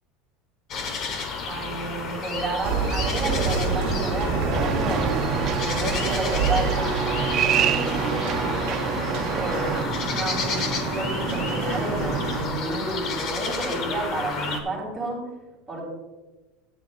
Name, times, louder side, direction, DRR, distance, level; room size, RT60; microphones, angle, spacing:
sound 1, 0.7-14.6, left 4 dB, 30° left, 1.0 m, -31 dB
voice 1, 1.4-5.2 5.6-8.9 9.3-15.2 15.7-15.8, right 2 dB, 10° right, -4 dB, 3.2 m, -31 dB
sound 2, 2.6-12.4, right 4 dB, 50° right, 1.4 m, -28 dB
sound 3, 4.5-9.8, right 9 dB, 30° right, 0.4 m, -28 dB
13.5 x 9.5 x 2.4 m, 1.1 s
supercardioid pair, 180°, 0 cm